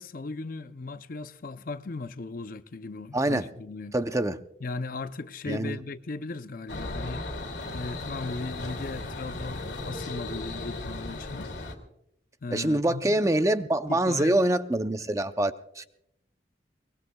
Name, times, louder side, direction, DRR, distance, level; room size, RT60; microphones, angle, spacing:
voice 1, 0.0-4.0 4.6-7.2 7.7-11.5 12.4-13.3 13.9-14.5, left 3 dB, 45° left, 0.5 m, -37 dB
voice 2, 3.1-3.5 3.9-4.4 5.5-5.8 12.5-15.9, right 1 dB, 15° right, 0.6 m, -25 dB
sound 1, 6.7-11.8, left 2 dB, 60° left, 2.5 m, -36 dB
23.5 x 21.0 x 2.3 m
head